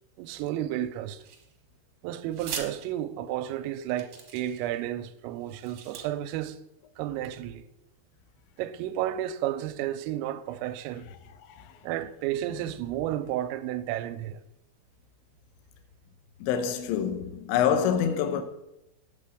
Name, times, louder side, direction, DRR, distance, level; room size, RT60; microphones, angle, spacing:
voice 1, 0.2-1.2 2.0-6.6 7.0-7.6 8.6-11.1 11.8-14.4, right 12 dB, 90° right, 3.2 m, -32 dB
sound 1, 1.2-1.8 2.3-2.7 3.4-3.5 4.0-4.8 5.4-6.0, right 7 dB, 70° right, 2.0 m, -40 dB
voice 2, 16.4-18.4, left 8 dB, 80° left, 2.9 m, -26 dB
8.5 x 7.6 x 5.0 m
omnidirectional pair, 5.8 m